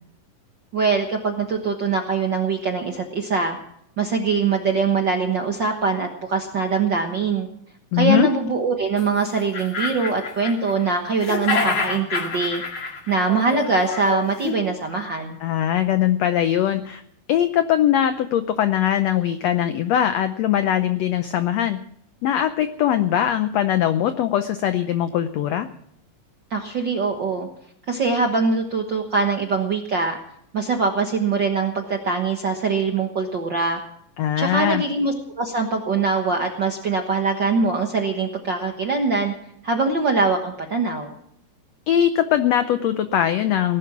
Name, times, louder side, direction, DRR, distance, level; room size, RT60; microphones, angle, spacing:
voice 1, 0.7-3.6 4.0-7.5 7.9-12.6 13.1-15.4 26.5-27.5 27.9-30.2 30.5-33.8 34.4-39.3 39.6-41.1, right 4 dB, 60° right, 3 dB, 1.2 m, -23 dB
voice 2, 7.9-8.3 15.4-17.0 17.3-21.8 22.2-25.7 34.2-34.8 41.9-43.8, left 11 dB, 90° left, 10 dB, 1.4 m, -21 dB
sound 1, 9.0-9.1 9.4-10.9 11.2-14.6, left 4 dB, 50° left, 2.9 m, -27 dB
18.5 x 11.5 x 6.0 m, 0.70 s
omnidirectional pair, 4.0 m